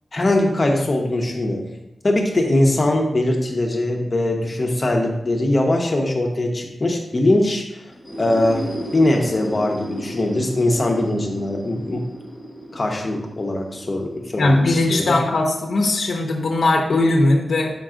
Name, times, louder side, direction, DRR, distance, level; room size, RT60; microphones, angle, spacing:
voice 1, 0.1-1.7 2.0-7.8 8.2-8.7 8.9-12.1 12.7-15.2, left 1 dB, 30° left, 1 dB, 1.0 m, -21 dB
sound 1, 7.9-15.6, equal, 5° left, 0.9 m, -34 dB
voice 2, 14.3-17.7, left 2 dB, 65° left, 1 dB, 0.8 m, -19 dB
6.4 x 5.4 x 3.7 m, 0.89 s
wide cardioid pair, 165°, 0 cm